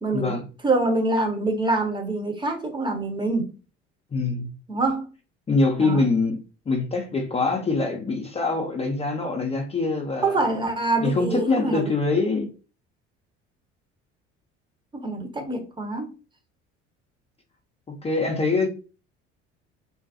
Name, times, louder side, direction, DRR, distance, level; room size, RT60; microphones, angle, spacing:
voice 1, 0.0-3.5 4.7-5.1 5.7-6.1 10.2-11.9 14.9-16.1, right 2 dB, 15° right, 3 dB, 0.8 m, -25 dB
voice 2, 4.1-4.5 5.5-6.4 6.7-10.4 11.0-12.5 18.0-18.7, left 3 dB, 15° left, 1 dB, 0.5 m, -24 dB
2.6 x 2.2 x 2.6 m, 0.35 s
figure-of-eight pair, 55°, 36 cm